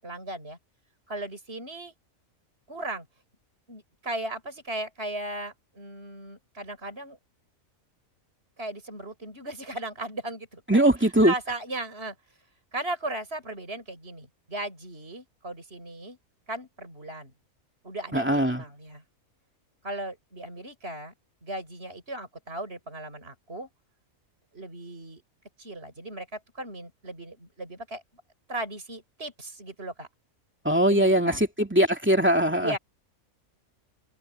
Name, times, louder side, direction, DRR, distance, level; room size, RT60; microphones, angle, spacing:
voice 1, 0.0-0.6 1.1-1.9 2.7-3.1 3.7-7.2 8.6-10.8 11.2-12.2 12.7-16.2 16.5-17.3 17.8-19.0 19.8-21.1 21.4-23.7 24.5-25.2 25.6-28.0 28.5-30.1 30.9-31.4 32.6-32.8, right 2 dB, 45° right, 6.9 m, -37 dB
voice 2, 10.7-11.3 18.1-18.6 30.6-32.8, right 1 dB, 10° right, 2.6 m, -21 dB
omnidirectional pair, 1.5 m